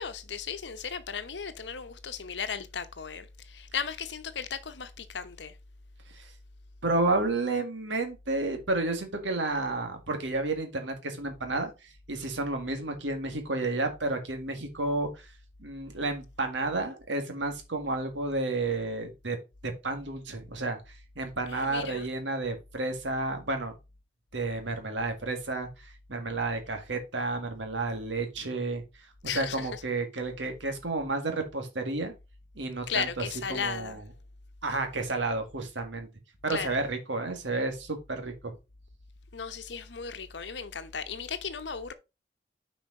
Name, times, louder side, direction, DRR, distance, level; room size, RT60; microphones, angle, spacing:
voice 1, 0.0-5.6 21.5-22.1 29.2-29.7 32.9-34.0 36.5-36.8 39.3-41.9, left 6 dB, 75° left, 0.9 m, -36 dB
voice 2, 6.8-11.7 12.1-15.3 15.6-19.4 19.6-23.7 24.3-25.7 26.1-28.8 29.3-32.1 32.6-34.0 34.6-36.1 36.4-38.5, right 2 dB, 85° right, 1.8 m, -31 dB
6.2 x 5.0 x 5.2 m
head